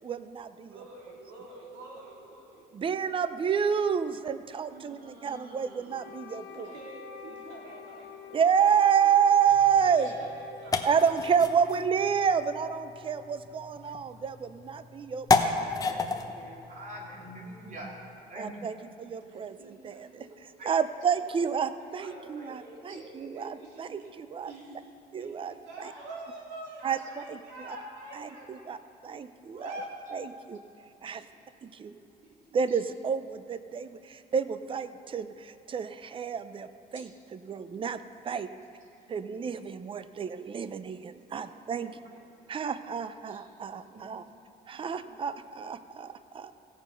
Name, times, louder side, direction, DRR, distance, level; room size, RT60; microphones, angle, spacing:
voice 1, 0.0-0.8 2.7-6.8 8.3-10.2 10.8-15.6 18.4-24.5 25.1-25.9 26.8-27.8 28.1-28.8 29.0-29.7 30.1-30.6 31.0-31.2 31.6-32.0 32.5-38.5 39.1-41.9 42.5-44.2 44.7-46.5, right 7 dB, 30° right, 12 dB, 0.5 m, -29 dB
voice 2, 0.6-2.9 4.7-6.1 6.5-8.4 9.8-11.0 11.5-11.7 15.8-16.0 16.4-16.5 19.3-20.3 20.7-20.8 22.0-23.8 24.4-24.9 25.2-28.7 29.1-29.9 32.0-32.4 37.5-37.9 39.0-39.1 40.0-40.7 41.3-42.2 44.7-45.1, right 2 dB, 80° right, -3 dB, 2.9 m, -47 dB
Wind instrument woodwind instrument, 5.9-13.9, left 8 dB, 70° left, 2.1 m, -49 dB
sound 1, 9.5-18.1, left 4 dB, 20° left, 0.8 m, -33 dB
voice 3, 16.3-18.0 18.3-18.5 20.6-20.7 22.0-22.1 22.4-22.5 43.9-44.0, right 1 dB, 50° right, -3 dB, 3.0 m, -43 dB
16.5 x 6.9 x 5.7 m, 2.7 s
cardioid pair, 110°, 17 cm